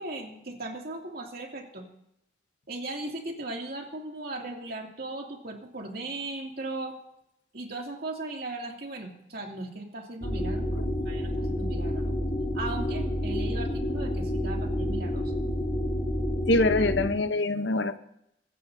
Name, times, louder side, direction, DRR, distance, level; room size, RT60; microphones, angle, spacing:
voice 1, 0.0-1.8 2.7-7.0 7.5-12.1 12.5-15.3, right 2 dB, 55° right, 0 dB, 2.5 m, -37 dB
sound 1, 10.2-17.1, equal, 35° left, 5.0 m, -29 dB
voice 2, 16.5-18.0, left 2 dB, 70° left, 10 dB, 0.8 m, -24 dB
24.0 x 14.0 x 2.7 m, 0.79 s
head